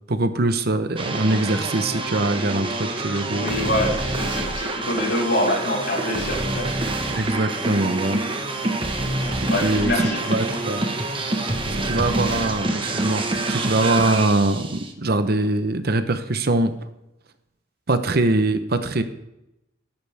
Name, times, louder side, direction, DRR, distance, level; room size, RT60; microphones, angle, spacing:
voice 1, 0.1-3.9 7.1-8.2 9.6-9.9 10.3-10.9 11.8-13.2 13.5-16.7 17.9-19.0, right 2 dB, 55° right, 10 dB, 0.9 m, -22 dB
sound 1, 1.0-14.9, right 2 dB, 30° right, 1.4 m, -26 dB
voice 2, 3.3-6.7 9.4-10.2 10.5-10.6, left 1 dB, 65° left, -3 dB, 5.1 m, -25 dB
13.5 x 11.5 x 3.5 m, 0.87 s
head